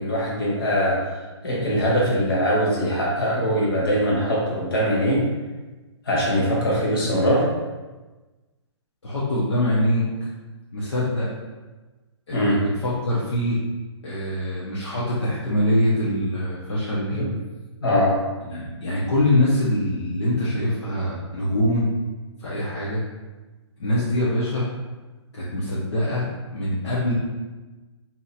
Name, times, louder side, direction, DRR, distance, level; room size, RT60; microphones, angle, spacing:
voice 1, 0.0-5.2 6.0-7.4 12.3-12.6 17.1-17.3 17.8-18.2 22.8-22.9, equal, 50° left, -4 dB, 1.2 m, -22 dB
voice 2, 9.0-10.0 10.7-11.3 12.3-13.6 14.0-17.1 18.5-21.9 22.4-23.0 23.8-24.7 25.3-26.2 26.5-27.1, left 1 dB, 65° left, -7 dB, 0.9 m, -23 dB
2.8 x 2.5 x 4.0 m, 1.2 s
hypercardioid pair, 175°, 15 cm